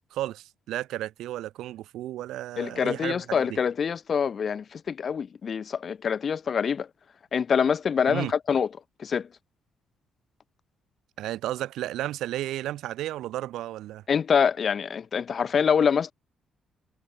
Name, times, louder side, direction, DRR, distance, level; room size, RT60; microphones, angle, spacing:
voice 1, 0.1-3.5 8.1-8.3 11.2-14.0, right 14 dB, 85° right, 4.9 m, -33 dB
voice 2, 2.6-6.9 7.3-8.7 9.0-9.3 14.1-16.1, left 7 dB, 45° left, 4.0 m, -25 dB
cardioid pair, 110°, 0 cm